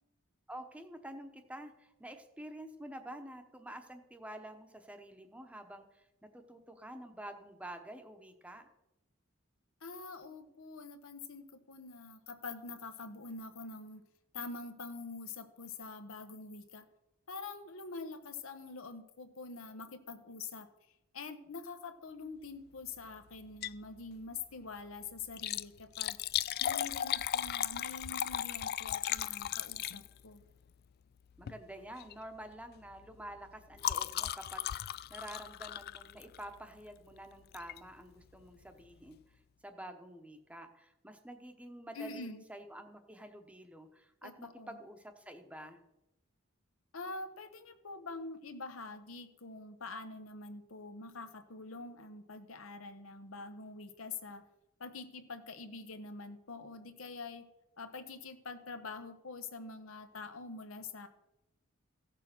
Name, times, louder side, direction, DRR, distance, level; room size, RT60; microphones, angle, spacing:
voice 1, 0.5-6.0 6.3-8.7 31.4-34.6 35.1-39.2 39.6-45.8, right 1 dB, 5° right, 6 dB, 0.9 m, -48 dB
voice 2, 9.8-14.0 14.3-16.8 17.3-20.7 21.1-26.2 26.6-30.4 41.9-42.4 44.2-44.8 46.9-54.4 54.8-57.5 57.8-61.1, left 3 dB, 75° left, 8 dB, 1.0 m, -45 dB
Liquid, 23.4-23.9 24.2-24.3 25.2-30.4 31.4-31.6 32.0-32.2 32.5-36.6 37.5-37.8 38.3-38.4 38.6-38.7, left 11 dB, 50° left, 0.3 m, -36 dB
15.5 x 6.7 x 5.9 m, 0.92 s
head